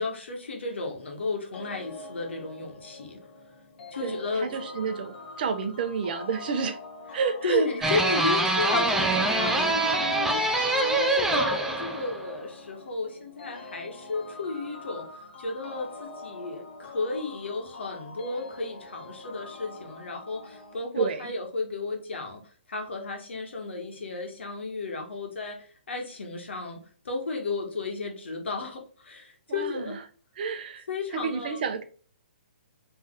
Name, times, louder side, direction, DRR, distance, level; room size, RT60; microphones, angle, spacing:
voice 1, 0.0-3.2 3.9-4.5 7.1-15.1 15.4-22.4 22.7-30.0 30.9-31.6, left 3 dB, 80° left, 1.5 m, -33 dB
sound 1, 1.5-20.7, left 3 dB, 65° left, 1.4 m, -44 dB
voice 2, 4.0-6.8 7.1-7.9 20.9-21.3 29.5-30.0 30.4-30.9 31.1-31.8, right 6 dB, 55° right, 0.8 m, -30 dB
sound 2, 7.8-12.3, right 2 dB, 5° right, 0.5 m, -25 dB
4.0 x 3.4 x 3.7 m
hypercardioid pair, 145°, 6 cm